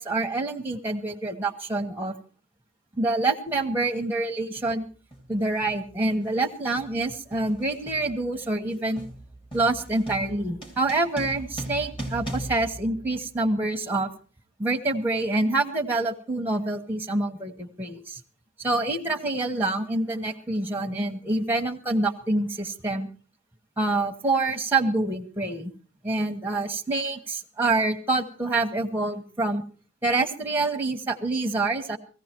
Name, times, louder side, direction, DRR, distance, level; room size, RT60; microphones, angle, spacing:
voice 1, 0.0-2.1 2.9-4.9 5.3-9.0 9.5-14.1 14.6-18.2 18.6-23.1 23.8-25.7 26.0-29.6 30.0-32.0, right 2 dB, 10° right, 4 dB, 1.1 m, -26 dB
sound 1, 3.5-3.6 4.6-4.8 5.1-13.6, right 1 dB, 25° left, 2.6 m, -39 dB
17.0 x 15.5 x 4.5 m, 0.38 s
head